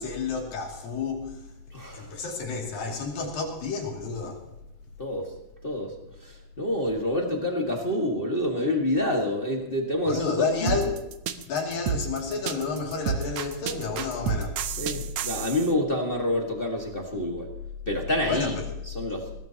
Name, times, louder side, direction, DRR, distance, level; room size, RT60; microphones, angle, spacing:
voice 1, 0.0-1.5 1.9-4.4 10.1-10.9 11.4-14.6 18.3-18.6, left 4 dB, 70° left, 0 dB, 4.3 m, -30 dB
voice 2, 1.7-2.1 5.0-5.3 5.6-5.9 6.2-10.3 10.6-10.8 14.8-17.5 17.9-18.5 18.9-19.3, left 1 dB, 30° left, 0 dB, 1.0 m, -27 dB
sound 1, 10.7-15.7, right 8 dB, 75° right, 1.5 m, -30 dB
22.0 x 18.0 x 2.9 m, 0.92 s
omnidirectional pair, 4.1 m